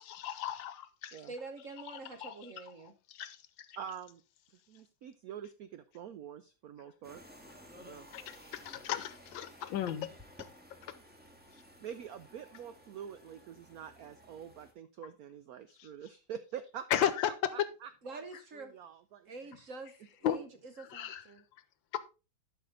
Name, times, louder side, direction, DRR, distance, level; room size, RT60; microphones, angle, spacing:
voice 1, 0.0-1.2 2.2-2.3 3.1-3.4 3.7-3.8 8.1-10.1 15.8-15.9 16.9-17.3 20.2-20.4 20.9-21.2 21.9-22.0, left 10 dB, 75° left, 1.4 m, -34 dB
voice 2, 1.3-2.9 18.0-18.8 19.3-19.9 20.2-21.4, right 3 dB, 50° right, 1.0 m, -46 dB
voice 3, 3.8-4.2 4.7-7.2 7.8-8.1 11.8-17.1 17.5-18.2 18.5-19.3, right 8 dB, 80° right, 0.8 m, -46 dB
sound 1, 7.0-14.7, equal, 5° right, 1.4 m, -55 dB
12.0 x 5.2 x 3.8 m
omnidirectional pair, 2.2 m